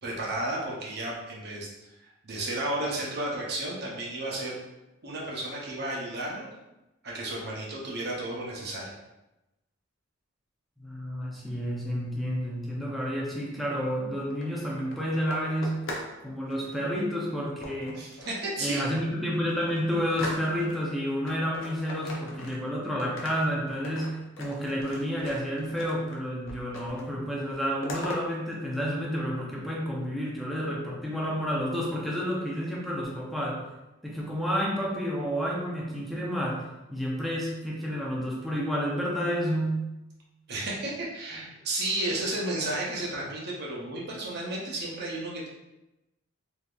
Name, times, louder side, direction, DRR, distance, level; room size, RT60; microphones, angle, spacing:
voice 1, 0.0-1.7 2.0-4.6 5.0-6.5 7.0-8.8 18.0-18.9 40.5-45.5, right 1 dB, 50° right, -3 dB, 0.8 m, -33 dB
voice 2, 10.8-15.8 16.2-18.0 18.6-33.6 34.0-36.6 36.9-39.8, equal, ahead, -4 dB, 0.5 m, -30 dB
sound 1, 14.2-16.2 16.4-16.8 17.6-18.4 18.9-19.0 19.3-20.9 21.2-22.7 23.0-26.2 26.5-27.1 27.3-28.2, left 1 dB, 75° left, 0.6 m, -40 dB
3.5 x 2.7 x 2.4 m, 0.97 s
head